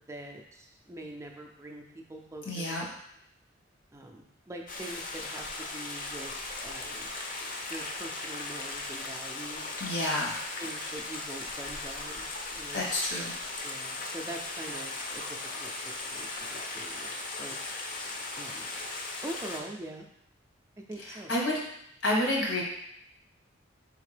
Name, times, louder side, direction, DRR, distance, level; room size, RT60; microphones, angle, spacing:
voice 1, 0.0-2.8 3.9-6.3 6.6-7.1 7.7-9.8 10.6-12.9 13.6-15.2 15.6-15.7 16.0-17.5 18.4-18.7 19.2-20.1 20.9-21.3, right 1 dB, 15° right, 2 dB, 0.4 m, -44 dB
voice 2, 2.4-2.8 9.8-10.3 12.7-13.3 21.3-21.5 22.0-22.6, left 1 dB, 80° left, -3 dB, 1.3 m, -29 dB
Stream, 4.7-19.6, left 2 dB, 45° left, 0.6 m, -38 dB
4.1 x 3.6 x 3.2 m, 0.75 s
head